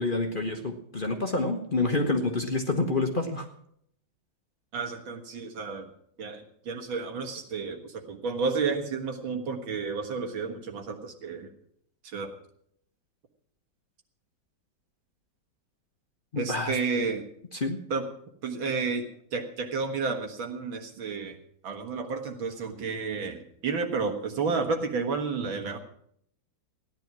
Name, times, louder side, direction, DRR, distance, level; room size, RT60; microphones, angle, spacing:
voice 1, 0.0-3.5 16.3-16.8 17.5-17.8, left 2 dB, 30° left, 4 dB, 1.1 m, -28 dB
voice 2, 4.7-5.9 6.2-11.5 12.0-12.3 16.4-17.2 17.9-18.0 18.4-19.0 19.3-21.4 21.6-25.8, right 4 dB, 85° right, 4 dB, 2.4 m, -31 dB
16.0 x 10.5 x 6.0 m, 0.69 s
omnidirectional pair, 2.1 m